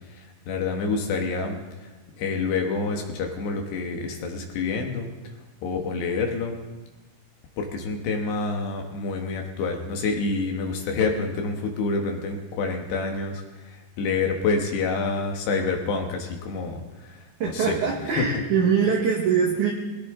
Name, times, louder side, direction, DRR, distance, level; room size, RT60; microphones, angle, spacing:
voice 1, 0.1-1.9 2.2-5.1 5.6-6.6 7.6-17.3 17.5-17.7 18.1-18.3, left 4 dB, 70° left, 2 dB, 3.4 m, -28 dB
voice 2, 17.4-19.7, right 6 dB, 60° right, 0 dB, 2.3 m, -23 dB
22.0 x 17.0 x 3.8 m, 1.2 s
omnidirectional pair, 5.2 m